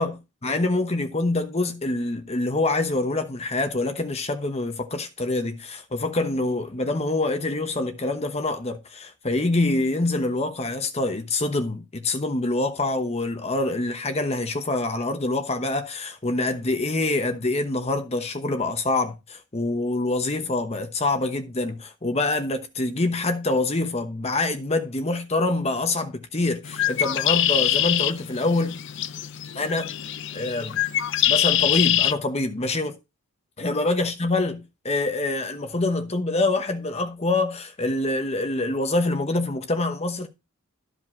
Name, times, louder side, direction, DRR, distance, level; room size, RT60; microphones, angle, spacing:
voice 1, 0.4-28.8 29.5-29.9 30.3-30.8 31.3-33.0 33.6-40.3, left 2 dB, 30° left, 1.0 m, -25 dB
Bird, 26.6-32.1, left 12 dB, 55° left, 0.5 m, -24 dB
13.0 x 5.1 x 4.4 m
head